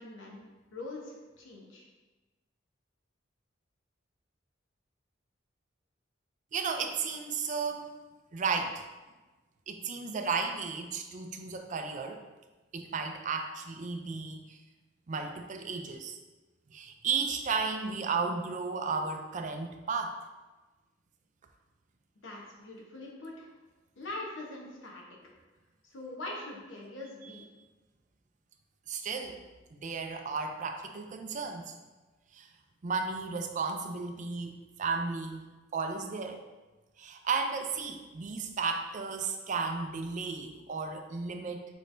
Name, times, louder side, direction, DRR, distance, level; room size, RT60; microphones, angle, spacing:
voice 1, 0.0-1.9 22.2-23.5 24.0-25.0 25.8-27.5, left 2 dB, 80° left, -2 dB, 0.9 m, -43 dB
voice 2, 6.5-7.9 8.3-8.8 9.7-12.2 12.7-14.6 15.1-16.2 16.7-20.1 28.9-29.4 29.7-31.7 32.3-32.5 32.8-36.4 37.0-41.7, right 5 dB, 40° right, 5 dB, 0.4 m, -34 dB
6.1 x 3.1 x 2.6 m, 1.2 s
head